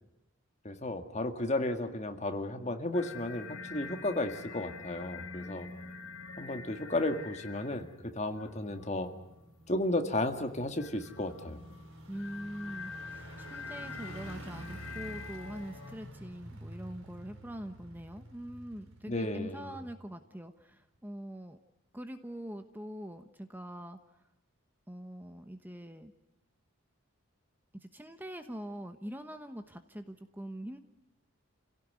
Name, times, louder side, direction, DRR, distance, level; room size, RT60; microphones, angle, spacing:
voice 1, 0.6-5.7 6.4-9.1 9.7-11.6 19.1-19.8, left 1 dB, 35° left, 6 dB, 1.9 m, -33 dB
sound 1, 2.9-8.0 8.4-9.3 10.8-16.0, left 5 dB, 90° left, 3.9 m, -46 dB
sound 2, 4.1-20.2 20.6-20.7, right 1 dB, 80° right, 3.5 m, -50 dB
voice 2, 12.1-21.6 21.9-24.0 24.9-26.1 27.7-30.8, equal, 10° right, 7 dB, 1.1 m, -43 dB
29.0 x 17.0 x 9.6 m, 0.93 s
head